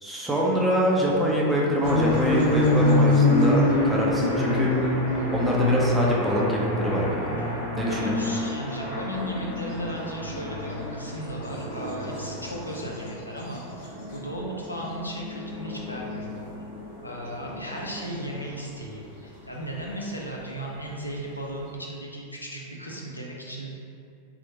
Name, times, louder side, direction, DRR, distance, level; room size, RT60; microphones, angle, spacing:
voice 1, 0.0-4.7 5.3-7.4 7.8-8.2, equal, 10° right, -3 dB, 0.4 m, -24 dB
sound 1, 1.8-18.5, left 2 dB, 50° left, 1.1 m, -27 dB
voice 2, 7.8-16.4 17.0-23.8, equal, 85° left, -3 dB, 0.4 m, -36 dB
2.8 x 2.0 x 2.8 m, 2.5 s
figure-of-eight pair, 90°, 0 cm